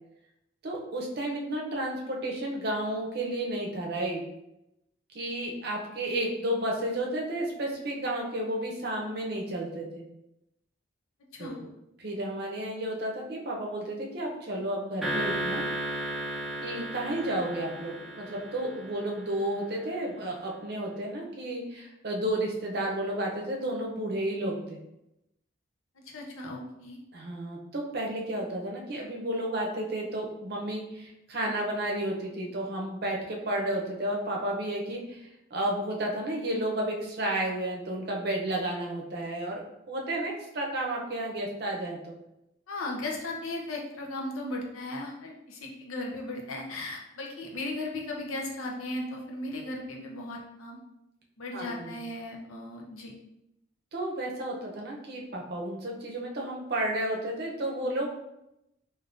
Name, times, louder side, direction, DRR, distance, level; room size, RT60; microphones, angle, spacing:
voice 1, 0.6-4.2 5.1-10.0 11.4-11.7 12.0-15.6 16.6-24.8 27.1-39.6 39.9-42.2 51.5-51.9 53.9-58.1, right 1 dB, 50° right, -1 dB, 0.6 m, -32 dB
sound 1, 15.0-19.5, right 1 dB, ahead, 0.4 m, -34 dB
voice 2, 26.0-27.0 42.7-50.8 51.4-53.1, left 2 dB, 90° left, 0 dB, 0.7 m, -36 dB
3.5 x 2.6 x 2.5 m, 0.86 s
head